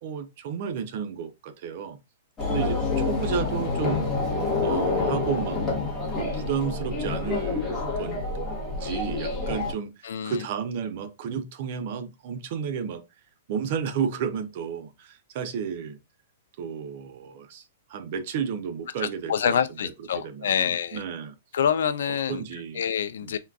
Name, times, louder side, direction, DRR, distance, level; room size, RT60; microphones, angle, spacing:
voice 1, 0.0-2.0 2.5-4.1 4.6-5.6 6.1-8.3 8.7-13.0 13.5-16.0 16.6-17.6 17.9-19.6 19.8-21.3 22.1-22.8 23.2-23.4, right 7 dB, 45° right, 0.4 m, -32 dB
sound 1, 2.4-9.7, left 3 dB, 15° left, 0.9 m, -27 dB
voice 2, 10.0-10.4 19.0-21.0 21.5-22.4 22.8-23.4, left 8 dB, 75° left, 0.3 m, -26 dB
3.6 x 2.3 x 2.3 m
hypercardioid pair, 165°, 0 cm